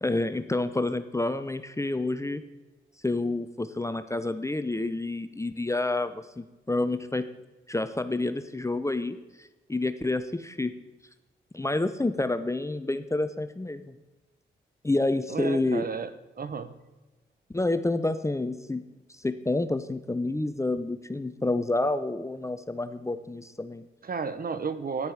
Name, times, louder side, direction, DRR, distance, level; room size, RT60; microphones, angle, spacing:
voice 1, 0.0-2.4 3.0-7.3 7.7-10.7 11.5-14.0 14.8-15.9 17.5-18.8 19.1-23.9, left 2 dB, 15° left, 11 dB, 0.7 m, -29 dB
voice 2, 15.3-16.1 16.4-16.7 24.0-25.1, right 5 dB, 50° right, 12 dB, 0.9 m, -32 dB
9.9 x 9.8 x 4.8 m, 1.1 s
supercardioid pair, 50°, 20 cm